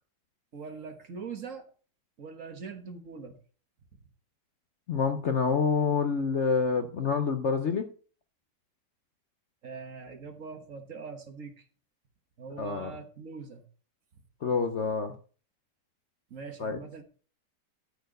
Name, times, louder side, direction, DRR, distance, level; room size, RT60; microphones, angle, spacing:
voice 1, 0.5-1.7 2.2-3.4 9.6-11.7 12.4-13.6 16.3-17.0, right 5 dB, 50° right, 6 dB, 1.6 m, -42 dB
voice 2, 4.9-7.9 12.6-12.9 14.4-15.1 16.6-16.8, left 5 dB, 55° left, 7 dB, 0.9 m, -27 dB
13.0 x 4.4 x 6.6 m, 0.40 s
omnidirectional pair, 1.9 m